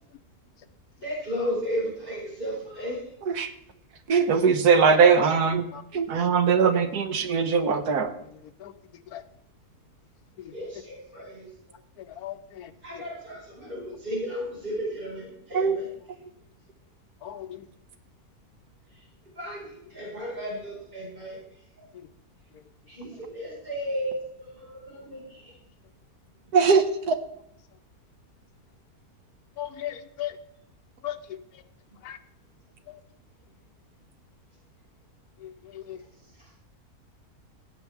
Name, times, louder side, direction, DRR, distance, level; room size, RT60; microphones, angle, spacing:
voice 1, 1.0-3.0 10.5-11.5 12.8-15.9 18.9-19.0 19.3-21.4 21.8-21.9 22.9-25.6 36.4-36.5, equal, 35° right, -6 dB, 5.1 m, -34 dB
voice 2, 4.1-5.7 5.9-8.1 15.5-15.8 26.5-27.2, right 5 dB, 90° right, 8 dB, 1.5 m, -20 dB
voice 3, 12.1-12.7 17.2-17.6 29.6-30.3 31.0-31.2 32.0-32.2 35.4-36.0, left 12 dB, 80° left, 9 dB, 1.3 m, -36 dB
15.5 x 9.1 x 3.5 m, 0.74 s
omnidirectional pair, 1.6 m